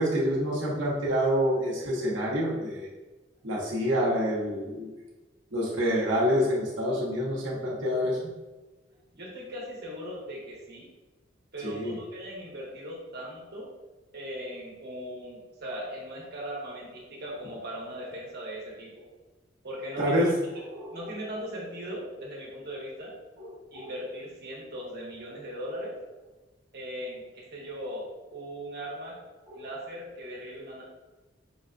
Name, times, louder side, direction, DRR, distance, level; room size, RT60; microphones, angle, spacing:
voice 1, 0.0-2.9 3.4-4.9 5.5-8.2 11.6-11.9 20.0-21.0 23.4-23.5 23.7-23.9 29.5-29.6, equal, 90° right, -5 dB, 0.9 m, -27 dB
voice 2, 9.1-10.9 11.5-13.7 14.1-19.1 19.6-20.3 20.9-23.1 23.7-25.9 26.7-29.2 29.5-30.8, equal, 60° right, -4 dB, 1.1 m, -39 dB
5.4 x 2.2 x 2.5 m, 1.2 s
head